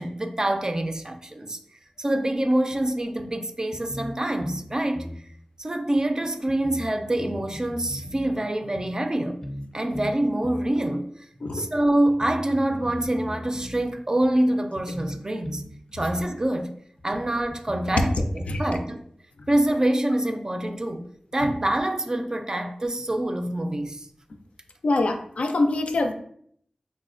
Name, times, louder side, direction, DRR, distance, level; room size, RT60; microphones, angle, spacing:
voice 1, 0.0-1.6 2.0-5.1 5.6-9.4 9.7-11.1 11.5-15.6 15.9-16.7 17.0-19.0 19.5-21.0 21.3-24.1, right 1 dB, 30° right, 0.3 m, -25 dB
sound 1, 2.7-2.8 3.2-3.3 3.7-4.7 5.0-5.2 6.0-6.1 6.5-8.3 8.8-8.9 9.4-9.7 9.9-10.7 11.5-11.6 12.1-13.8 14.2-14.3 14.8-15.7 16.0-16.3 17.0-17.1 17.5-18.8, equal, 20° left, 0.5 m, -38 dB
voice 2, 24.8-26.1, left 2 dB, 80° left, 0.4 m, -24 dB
4.0 x 2.2 x 2.4 m
wide cardioid pair, 65°, 2 cm